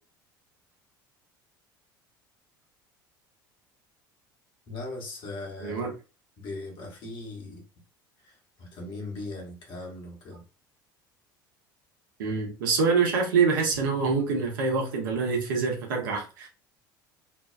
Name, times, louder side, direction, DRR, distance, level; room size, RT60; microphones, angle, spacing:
voice 1, 4.7-5.9 6.4-7.6 8.2-10.4, left 2 dB, 45° left, -1 dB, 1.1 m, -39 dB
voice 2, 12.2-16.5, right 5 dB, 65° right, 0 dB, 0.8 m, -25 dB
2.6 x 2.2 x 2.3 m, 0.33 s
figure-of-eight pair, 65°, 11 cm